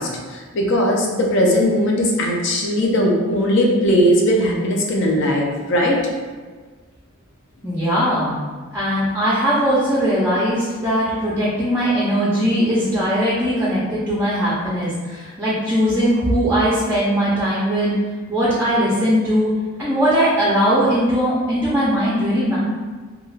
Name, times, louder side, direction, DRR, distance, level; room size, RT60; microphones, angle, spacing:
voice 1, 0.0-6.0, equal, 55° left, -1 dB, 0.5 m, -18 dB
voice 2, 7.6-8.3 8.7-18.0 18.3-19.5 19.8-22.6, equal, 10° right, -9 dB, 0.4 m, -19 dB
2.3 x 2.3 x 3.1 m, 1.4 s
head